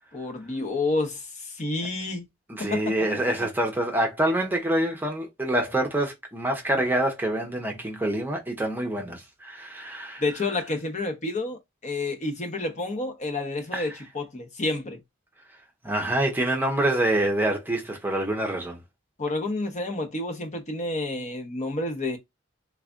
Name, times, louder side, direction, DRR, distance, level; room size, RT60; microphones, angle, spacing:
voice 1, 0.1-2.3 2.6-2.9 10.2-15.0 19.2-22.2, left 2 dB, 35° left, 0.9 m, -29 dB
voice 2, 2.5-10.2 13.7-13.9 15.8-18.8, right 1 dB, 10° right, 0.7 m, -26 dB
3.5 x 3.1 x 2.5 m
head